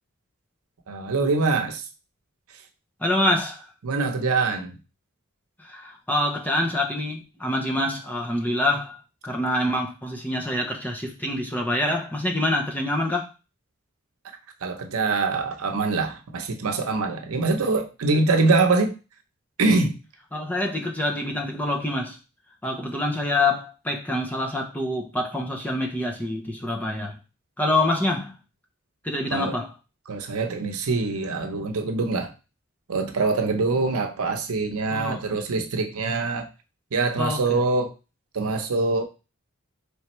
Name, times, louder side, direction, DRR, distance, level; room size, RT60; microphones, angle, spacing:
voice 1, 0.9-1.8 3.8-4.8 14.6-18.9 19.6-20.0 29.3-29.6 30.1-32.3 32.9-36.5 36.9-37.9 38.3-39.0, right 3 dB, 85° right, 5 dB, 0.7 m, -24 dB
voice 2, 3.0-3.6 5.6-13.3 20.3-22.2 22.6-27.2 27.6-28.3 29.0-29.7 34.9-35.4 37.2-37.6, left 1 dB, 10° left, 1 dB, 0.6 m, -26 dB
4.3 x 3.3 x 3.0 m, 0.31 s
head